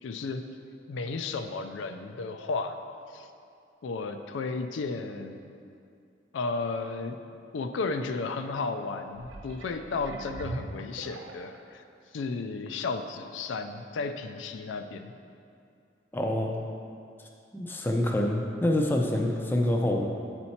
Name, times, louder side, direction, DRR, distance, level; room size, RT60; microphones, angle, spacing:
voice 1, 0.0-0.4 0.9-2.8 3.1-3.3 3.8-5.5 6.3-7.2 7.5-11.8 12.1-15.1, left 4 dB, 80° left, 7 dB, 0.4 m, -33 dB
sound 1, 9.1-11.7 12.3-12.4, right 2 dB, 85° right, 0.6 m, -41 dB
voice 2, 16.1-16.5 17.5-20.0, left 1 dB, 10° left, 1 dB, 0.5 m, -26 dB
8.8 x 4.4 x 4.2 m, 2.4 s
head